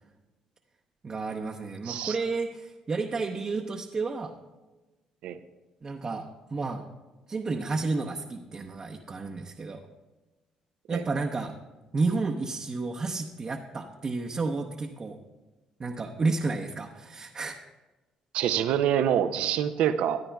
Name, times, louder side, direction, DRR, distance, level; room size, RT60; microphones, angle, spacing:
voice 1, 1.0-4.3 5.8-6.8 7.3-9.8 10.9-11.5 11.9-15.2 15.8-17.6, right 3 dB, 35° right, 1 dB, 0.8 m, -31 dB
voice 2, 18.3-20.2, right 10 dB, 80° right, 11 dB, 0.6 m, -26 dB
14.5 x 9.6 x 2.3 m, 1.1 s
supercardioid pair, 70°, 2 cm